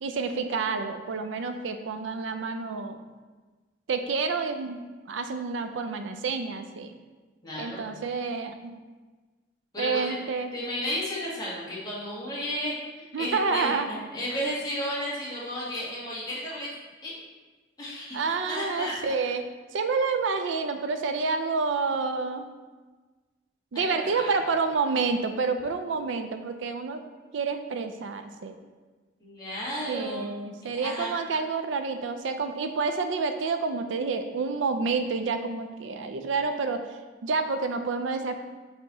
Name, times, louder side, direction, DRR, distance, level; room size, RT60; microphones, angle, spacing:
voice 1, 0.0-3.0 3.9-4.8 5.1-6.9 7.6-8.7 9.8-10.5 13.1-13.9 18.1-19.4 19.7-22.4 23.7-27.0 27.3-28.6 29.9-38.4, right 4 dB, 75° right, 7 dB, 0.4 m, -29 dB
voice 2, 7.4-7.8 9.7-10.2 10.5-16.7 17.0-17.1 17.8-18.2 18.5-19.1 23.7-24.4 29.2-30.3 30.6-31.1, equal, 20° left, -7 dB, 1.8 m, -33 dB
5.1 x 4.5 x 4.1 m, 1.3 s
head